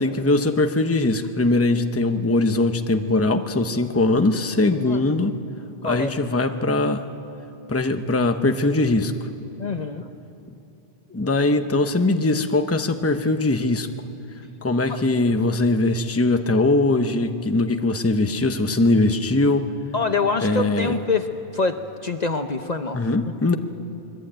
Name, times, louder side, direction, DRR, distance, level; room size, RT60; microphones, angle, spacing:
voice 1, 0.0-5.3 5.8-7.0 7.7-9.1 11.1-13.9 14.6-19.7 20.4-20.9 22.9-23.6, left 2 dB, 15° left, 7 dB, 0.9 m, -21 dB
voice 2, 4.9-5.2 5.8-6.1 9.6-10.1 14.9-15.0 19.9-21.3 21.5-23.0, left 4 dB, 45° left, 7 dB, 0.9 m, -25 dB
25.0 x 21.0 x 8.9 m, 2.7 s
omnidirectional pair, 1.1 m